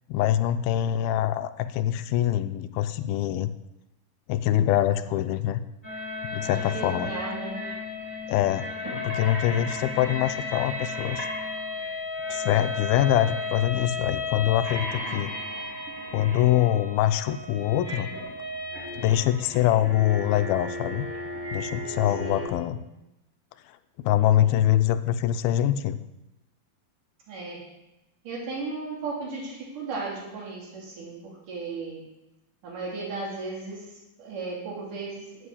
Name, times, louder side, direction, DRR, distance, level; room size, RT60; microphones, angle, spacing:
voice 1, 0.1-3.5 4.3-5.6 6.3-7.1 8.3-8.6 8.9-11.3 12.3-15.3 16.1-18.1 18.9-21.1 21.5-22.8 23.7-26.0, left 12 dB, 85° left, 11 dB, 2.4 m, -24 dB
sound 1, 5.8-22.5, left 2 dB, 5° right, 2.9 m, -34 dB
voice 2, 6.5-7.7 22.2-22.5 24.4-24.7 27.3-27.6 28.2-32.0 32.6-35.5, right 3 dB, 60° right, -3 dB, 4.4 m, -36 dB
9.7 x 8.3 x 8.5 m, 0.96 s
omnidirectional pair, 4.3 m